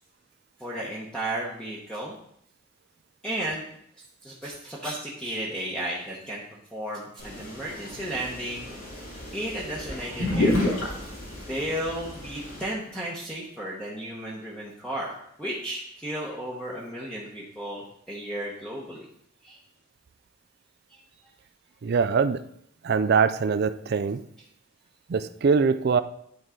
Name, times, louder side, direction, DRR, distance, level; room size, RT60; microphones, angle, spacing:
voice 1, 0.6-2.1 3.2-3.6 4.2-6.4 6.7-8.7 9.3-10.8 11.5-19.1 19.4-19.6 20.9-21.0, right 1 dB, 5° left, -6 dB, 1.0 m, -34 dB
sound 1, 7.2-12.6, left 1 dB, 90° left, 3.1 m, -31 dB
voice 2, 21.8-22.4 22.8-24.2 25.1-26.0, right 5 dB, 50° right, 13 dB, 0.4 m, -23 dB
11.0 x 4.6 x 3.8 m, 0.72 s
head